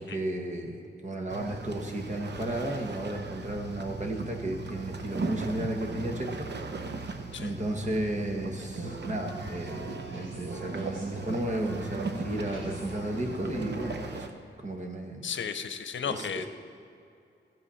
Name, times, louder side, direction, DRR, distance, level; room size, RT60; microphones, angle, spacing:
voice 1, 0.0-6.5 6.8-7.1 7.4-14.3 14.6-15.2 16.1-16.3, right 1 dB, 40° right, 2 dB, 1.5 m, -33 dB
sound 1, 1.3-14.3, right 3 dB, 65° right, 0.9 m, -38 dB
sound 2, 8.7-14.0, right 1 dB, 90° right, 2.7 m, -43 dB
voice 2, 15.2-16.5, left 7 dB, 80° left, 9 dB, 0.7 m, -34 dB
15.5 x 7.9 x 5.6 m, 2.5 s
wide cardioid pair, 125°, 19 cm